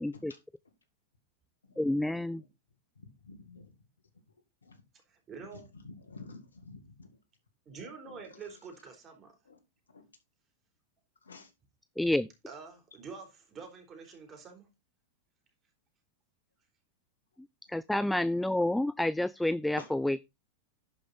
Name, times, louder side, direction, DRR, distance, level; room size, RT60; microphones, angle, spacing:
voice 1, 0.0-0.3 1.8-2.4 12.0-12.3 17.7-20.2, left 1 dB, 5° left, 0.4 m, -29 dB
voice 2, 1.6-2.5 3.0-3.8 4.6-4.8 5.4-7.2 7.7-8.6 9.4-9.6 9.9-10.1 11.2-11.5 12.9-13.0 19.8-19.9, left 3 dB, 90° left, 2.0 m, -50 dB
voice 3, 5.1-5.7 7.7-9.3 12.5-14.7, right 5 dB, 30° right, 4.0 m, -47 dB
11.0 x 5.2 x 4.2 m
hypercardioid pair, 100°, 0 cm